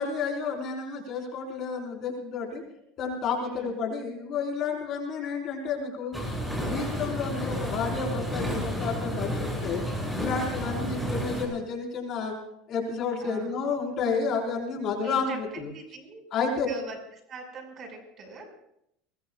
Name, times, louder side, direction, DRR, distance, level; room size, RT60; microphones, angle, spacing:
voice 1, 0.0-2.6 3.0-6.2 6.6-9.8 10.2-12.4 12.7-15.7 16.3-16.7, left 5 dB, 50° left, -1 dB, 5.1 m, -31 dB
voice 2, 3.4-3.8 10.6-11.3 13.2-13.6 14.9-16.2 16.6-17.0 17.3-18.4, right 4 dB, 45° right, 3 dB, 6.1 m, -43 dB
sound 1, 6.1-11.5, equal, 5° right, 7.5 m, -31 dB
24.0 x 21.0 x 2.5 m, 0.78 s
supercardioid pair, 100°, 0 cm